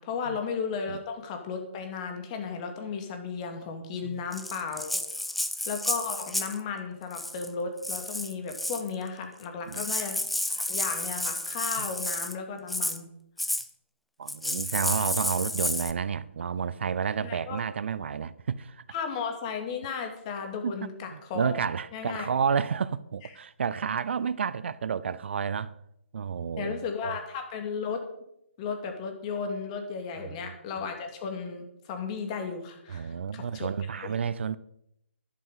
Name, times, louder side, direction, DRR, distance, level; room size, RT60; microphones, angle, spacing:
voice 1, 0.0-5.0 5.7-10.2 10.5-13.1 17.2-17.6 18.9-21.6 21.9-22.3 26.6-28.0 28.6-33.7 33.9-34.1, left 5 dB, 30° left, 2.5 m, -35 dB
Rattle (instrument), 4.3-6.6 7.1-7.5 7.8-8.9 9.4-9.5 9.7-12.4 12.7-13.0 13.4-13.7 14.3-15.9, left 1 dB, ahead, 0.4 m, -31 dB
voice 2, 14.2-18.8 20.6-20.8 21.1-25.7 26.1-27.2 30.2-30.4 30.8-30.9 32.9-34.6, right 6 dB, 60° right, 0.6 m, -30 dB
11.5 x 11.0 x 5.7 m
hypercardioid pair, 155°, 7 cm